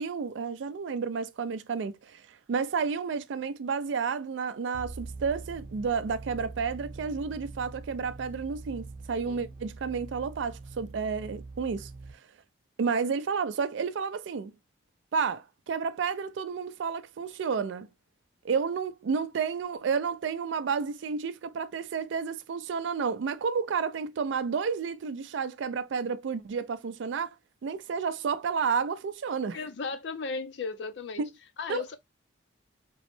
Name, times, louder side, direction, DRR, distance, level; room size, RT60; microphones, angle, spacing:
voice 1, 0.0-11.9 12.8-14.5 15.1-17.9 18.4-27.3 27.6-29.6 31.2-31.3 31.7-32.0, right 5 dB, 75° right, 0.3 m, -31 dB
sound 1, 4.7-12.1, right 3 dB, 45° right, 0.7 m, -43 dB
voice 2, 29.5-31.2 31.6-32.0, left 4 dB, 70° left, 0.5 m, -35 dB
3.0 x 2.0 x 3.0 m
head